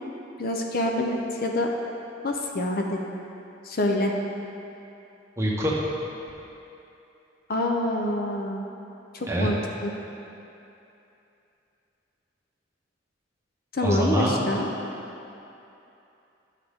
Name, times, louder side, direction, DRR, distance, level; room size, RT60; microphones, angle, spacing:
voice 1, 0.4-1.7 2.2-3.0 3.6-4.1 7.5-8.7 9.1-9.6 9.8-9.9 13.7-14.7, left 1 dB, 55° left, 1 dB, 0.7 m, -26 dB
voice 2, 5.4-5.8 9.3-9.5 13.8-14.3, right 1 dB, 15° right, -5 dB, 1.2 m, -24 dB
10.5 x 6.5 x 3.6 m, 2.8 s
head